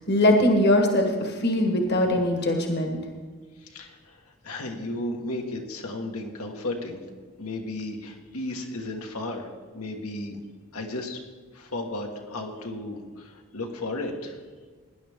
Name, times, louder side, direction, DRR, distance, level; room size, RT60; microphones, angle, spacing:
voice 1, 0.1-3.0, left 1 dB, 45° left, 3 dB, 1.4 m, -21 dB
voice 2, 3.6-7.0 7.4-10.4 10.7-11.2 11.5-14.4, left 2 dB, 85° left, 2 dB, 1.6 m, -34 dB
18.0 x 10.5 x 3.6 m, 1.5 s
head